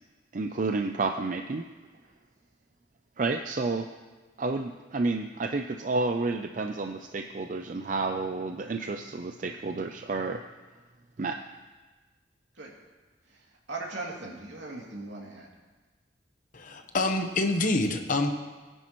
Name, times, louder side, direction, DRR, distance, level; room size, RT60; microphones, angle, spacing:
voice 1, 0.3-1.6 3.2-3.9 4.4-10.4 11.2-11.4, right 3 dB, 45° right, 5 dB, 0.4 m, -30 dB
voice 2, 13.3-15.5, right 2 dB, 85° right, -2 dB, 2.6 m, -39 dB
voice 3, 16.5-18.4, left 2 dB, 45° left, 5 dB, 1.0 m, -26 dB
21.0 x 9.9 x 3.1 m, 1.3 s
head